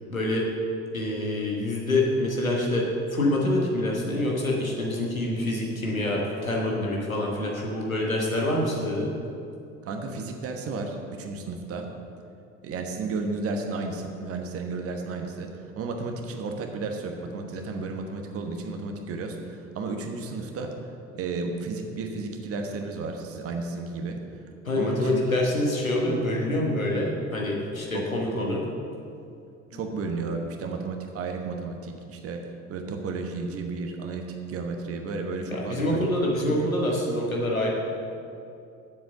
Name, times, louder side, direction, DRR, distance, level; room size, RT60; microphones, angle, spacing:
voice 1, 0.1-0.5 0.9-9.1 24.6-28.6 35.5-37.7, left 1 dB, 90° left, -2 dB, 1.3 m, -26 dB
voice 2, 9.8-11.8 12.6-20.7 21.2-24.2 24.8-25.2 27.9-28.3 29.7-32.4 32.7-36.1, right 3 dB, 35° right, 3 dB, 1.2 m, -33 dB
7.8 x 7.4 x 6.7 m, 2.5 s
figure-of-eight pair, 65°, 40 cm